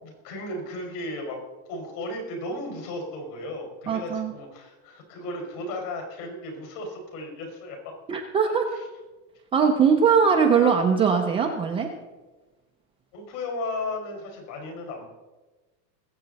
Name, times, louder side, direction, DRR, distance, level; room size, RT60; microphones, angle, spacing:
voice 1, 0.0-1.4 1.7-7.9 8.4-8.9 13.1-15.1, left 1 dB, 65° left, 2 dB, 5.1 m, -35 dB
voice 2, 3.9-4.3 8.1-8.6 9.5-11.9, right 6 dB, 15° right, 1 dB, 0.4 m, -21 dB
21.0 x 7.7 x 4.0 m, 1.2 s
supercardioid pair, 155°, 49 cm